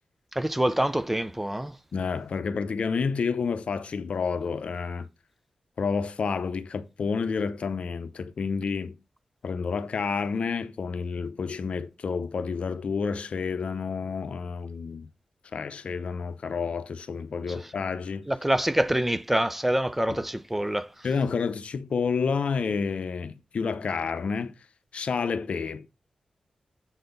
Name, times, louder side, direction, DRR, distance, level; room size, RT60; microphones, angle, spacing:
voice 1, 0.3-1.7 18.3-20.9, right 1 dB, 10° right, 0.4 m, -26 dB
voice 2, 1.9-5.1 5.8-9.0 9.4-15.1 15.5-18.3 21.0-24.5 24.9-25.9, left 5 dB, 60° left, 0.7 m, -29 dB
7.8 x 4.2 x 5.2 m
wide cardioid pair, 135°, 2 cm